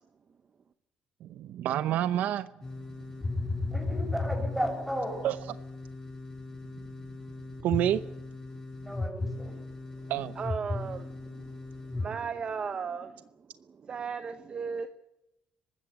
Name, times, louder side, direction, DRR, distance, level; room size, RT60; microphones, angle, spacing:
voice 1, 1.2-2.5 5.2-5.4 7.6-8.0 10.1-10.3, right 11 dB, 75° right, 14 dB, 0.7 m, -28 dB
sound 1, 2.6-12.1, left 2 dB, 20° left, 4.2 m, -36 dB
voice 2, 3.7-5.3 8.8-9.5, equal, 5° right, 2 dB, 7.7 m, -34 dB
voice 3, 10.0-14.9, right 6 dB, 35° right, 10 dB, 1.0 m, -37 dB
23.5 x 13.0 x 8.6 m, 0.88 s
cardioid pair, 120°, 3 cm